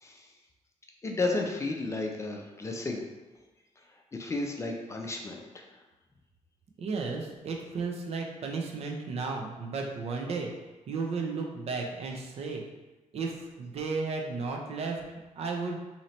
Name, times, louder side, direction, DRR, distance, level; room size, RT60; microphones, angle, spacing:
voice 1, 1.0-3.0 4.1-5.6, left 2 dB, 25° left, 1 dB, 0.4 m, -33 dB
voice 2, 6.8-10.5 10.9-12.6 13.1-13.3 13.6-15.0 15.4-15.8, right 4 dB, 55° right, 1 dB, 0.6 m, -33 dB
3.1 x 2.8 x 4.1 m, 1.1 s
wide cardioid pair, 155°, 12 cm